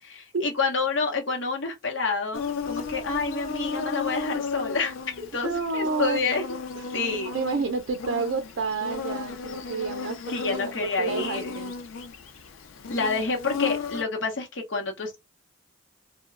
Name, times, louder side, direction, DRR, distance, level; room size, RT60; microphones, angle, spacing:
voice 1, 0.4-6.4 6.9-7.3 10.3-11.7 12.9-15.2, left 4 dB, 65° left, 0.8 m, -28 dB
Insect, 2.3-14.0, left 5 dB, 80° left, 0.4 m, -34 dB
voice 2, 5.4-6.2 6.8-7.0 7.2-11.7, right 4 dB, 65° right, 0.4 m, -30 dB
2.8 x 2.1 x 2.4 m
head